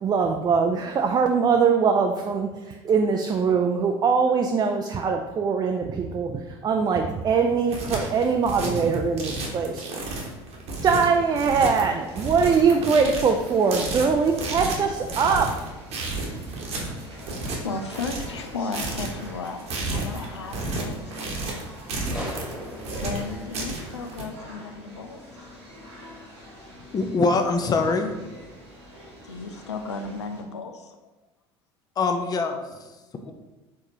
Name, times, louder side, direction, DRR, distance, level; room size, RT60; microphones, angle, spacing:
voice 1, 0.0-9.8 10.8-15.7 16.3-16.4, right 5 dB, 30° right, 3 dB, 0.4 m, -22 dB
sound 1, 7.5-24.2, right 2 dB, 50° right, 1.0 m, -32 dB
sound 2, 10.8-30.4, right 1 dB, 80° right, 1.5 m, -45 dB
voice 2, 17.2-19.6 19.9-21.6 23.0-25.3 29.2-31.0 33.2-33.3, left 4 dB, 85° left, 6 dB, 0.4 m, -35 dB
sound 3, 22.1-24.7, equal, 5° right, 1.3 m, -39 dB
voice 3, 26.9-28.3 32.0-32.6, left 3 dB, 30° left, 5 dB, 0.6 m, -23 dB
4.7 x 3.5 x 2.8 m, 1.1 s
hypercardioid pair, 65°, 14 cm